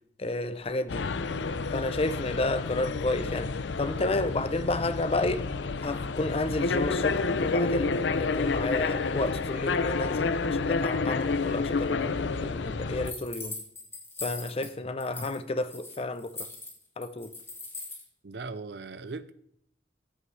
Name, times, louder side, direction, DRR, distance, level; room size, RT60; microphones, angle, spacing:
voice 1, 0.2-1.1 1.7-3.5 3.8-5.4 5.8-12.1 12.4-13.6 14.2-16.5 17.0-17.3, left 2 dB, 35° left, 0.6 m, -31 dB
sound 1, 0.9-13.1, left 4 dB, 80° left, 0.6 m, -29 dB
sound 2, 13.0-14.7 15.0-15.4 15.6-18.0, left 3 dB, 15° left, 2.3 m, -40 dB
voice 2, 18.2-19.3, right 3 dB, 65° right, 0.6 m, -38 dB
14.0 x 9.7 x 3.3 m
head